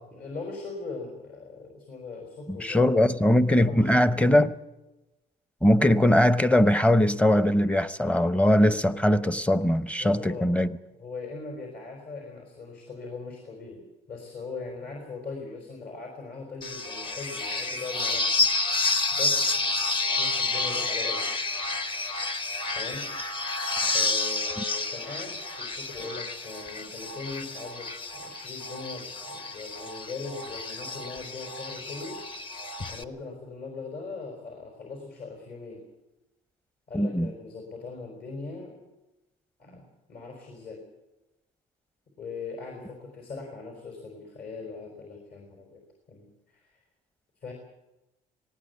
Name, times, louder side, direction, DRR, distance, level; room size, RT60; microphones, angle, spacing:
voice 1, 0.1-3.0 3.6-4.0 10.0-10.6 11.0-18.3 19.1-19.7 20.1-21.2 22.7-23.0 23.8-32.2 32.9-35.8 36.9-38.8 39.6-40.8 42.2-45.8 46.1-46.8 47.4-47.5, left 4 dB, 60° left, 2 dB, 4.8 m, -40 dB
voice 2, 2.5-4.5 5.6-10.7 36.9-37.3, left 1 dB, 5° left, 14 dB, 0.8 m, -21 dB
sound 1, 16.6-33.0, left 3 dB, 30° left, 1.1 m, -30 dB
18.5 x 18.5 x 8.2 m, 1.0 s
cardioid pair, 110°, 17 cm